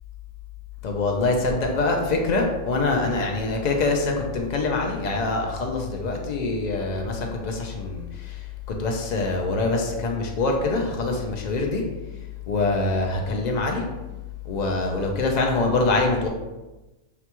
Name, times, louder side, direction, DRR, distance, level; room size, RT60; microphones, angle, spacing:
voice 1, 0.8-8.4 8.8-11.8 12.5-13.9 14.4-16.3, left 3 dB, 60° left, 1 dB, 0.4 m, -24 dB
5.9 x 2.3 x 2.9 m, 1.1 s
omnidirectional pair, 1.4 m